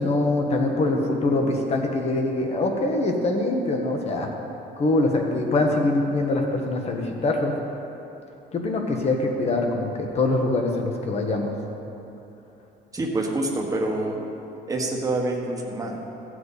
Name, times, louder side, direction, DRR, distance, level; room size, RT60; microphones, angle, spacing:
voice 1, 0.0-4.3 4.8-7.5 8.5-11.5, left 2 dB, 35° left, 2 dB, 1.3 m, -23 dB
voice 2, 12.9-14.2 14.7-16.0, right 2 dB, 20° right, 0 dB, 1.4 m, -26 dB
15.5 x 7.7 x 4.2 m, 3.0 s
cardioid pair, 145°, 18 cm